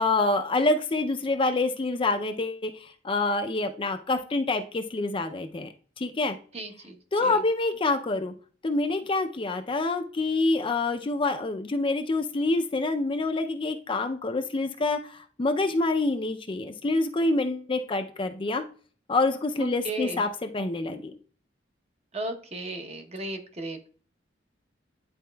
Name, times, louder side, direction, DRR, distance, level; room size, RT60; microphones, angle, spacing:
voice 1, 0.0-5.7 6.0-6.4 7.1-8.3 8.6-18.6 19.1-21.1, left 2 dB, 30° left, 6 dB, 0.4 m, -27 dB
voice 2, 6.5-7.0 7.2-7.3 19.6-20.2 22.1-23.9, right 1 dB, 35° right, 5 dB, 0.8 m, -35 dB
10.0 x 4.1 x 2.2 m, 0.42 s
head